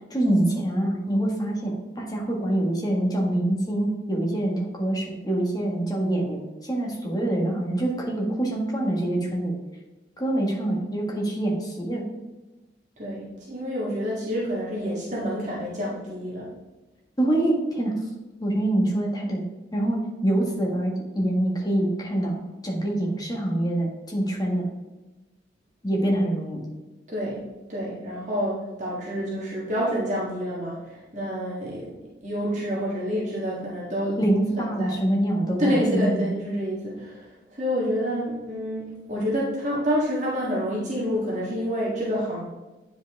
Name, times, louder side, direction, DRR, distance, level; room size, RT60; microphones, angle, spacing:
voice 1, 0.1-9.6 10.2-12.0 17.2-18.0 18.4-19.4 19.7-24.7 25.8-26.6 34.2-36.3, right 1 dB, 20° left, -2 dB, 1.7 m, -25 dB
voice 2, 13.0-16.5 27.1-27.4 27.7-31.9 32.2-34.2 34.8-35.0 35.6-37.3 37.6-42.4, equal, 40° right, -6 dB, 1.7 m, -28 dB
9.4 x 5.2 x 3.5 m, 1.1 s
head